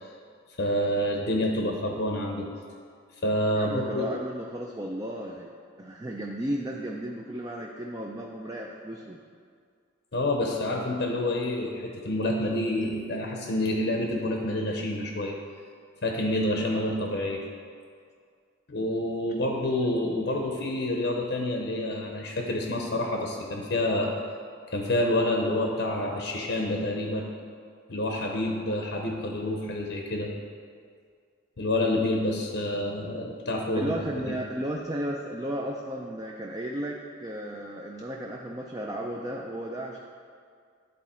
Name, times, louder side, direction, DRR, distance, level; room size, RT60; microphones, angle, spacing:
voice 1, 0.6-2.5 3.2-4.1 10.1-15.4 16.0-17.4 18.7-24.1 24.7-27.3 27.9-30.3 31.6-33.9 34.3-34.4, left 1 dB, 60° left, 0 dB, 0.7 m, -28 dB
voice 2, 3.5-5.5 5.8-9.2 33.7-40.0, right 1 dB, 20° right, -1 dB, 0.4 m, -34 dB
10.5 x 4.0 x 4.3 m, 2.2 s
head